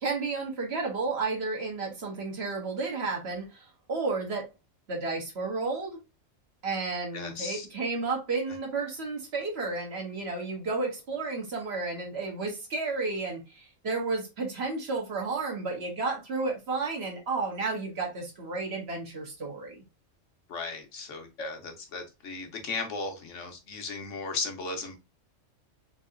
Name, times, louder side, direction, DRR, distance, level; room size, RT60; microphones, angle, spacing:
voice 1, 0.0-4.4 4.9-6.0 6.6-19.8, right 3 dB, 55° right, 1.3 m, -32 dB
voice 2, 7.1-7.7 20.5-25.0, left 4 dB, 75° left, 1.2 m, -36 dB
3.8 x 2.7 x 2.4 m
omnidirectional pair, 1.3 m